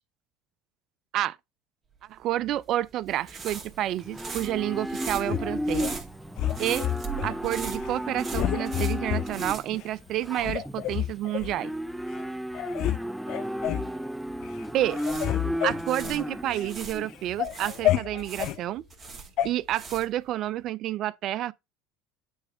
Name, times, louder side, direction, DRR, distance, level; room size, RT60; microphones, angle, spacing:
voice 1, 2.1-6.0 6.6-6.8 7.2-11.7 14.7-15.0 15.6-18.8 19.4-21.5, right 13 dB, 55° right, 0.4 m, -29 dB
sound 1, 2.4-10.5 10.8-10.9 14.7-17.0 17.4-20.3, right 5 dB, 30° right, 2.2 m, -40 dB
Livestock farm animals working animals, 3.1-17.8, equal, 5° right, 0.5 m, -34 dB
sound 2, 5.2-5.9 6.4-7.3 7.8-8.0 8.3-9.3 9.8-9.9 10.4-11.5 12.1-12.2 12.5-13.0 13.3-13.9 14.4-14.6 14.9-16.7 17.1-18.6 19.4-19.5, left 13 dB, 55° left, 0.6 m, -29 dB
8.8 x 3.3 x 4.8 m
hypercardioid pair, 75°, 0 cm